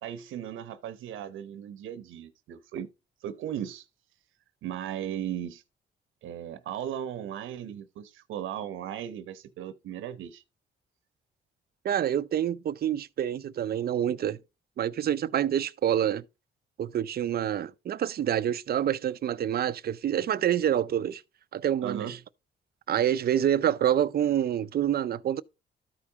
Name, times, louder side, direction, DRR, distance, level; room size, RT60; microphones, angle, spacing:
voice 1, 0.0-2.9 3.2-3.9 4.6-5.6 6.2-10.4 21.8-22.2, right 10 dB, 85° right, 0.9 m, -37 dB
voice 2, 11.8-14.4 14.8-16.2 16.8-21.2 21.5-22.2 22.9-25.4, right 10 dB, 50° right, 0.5 m, -27 dB
13.5 x 4.9 x 2.8 m
cardioid pair, 90°, 20 cm